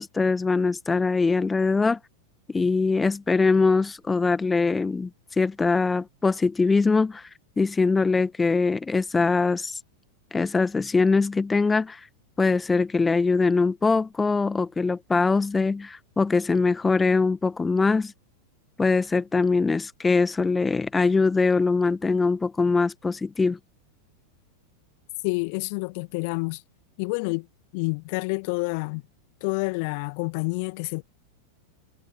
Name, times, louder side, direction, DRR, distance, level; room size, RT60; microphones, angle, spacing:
voice 1, 0.0-2.0 2.5-5.1 5.4-7.2 7.6-9.8 10.3-12.0 12.4-18.1 18.8-23.6, left 4 dB, 10° left, 1.6 m, -22 dB
voice 2, 25.2-26.6 27.0-27.5 27.7-29.0 29.4-31.0, left 32 dB, 45° left, 1.9 m, -28 dB
figure-of-eight pair, 90°, 0 cm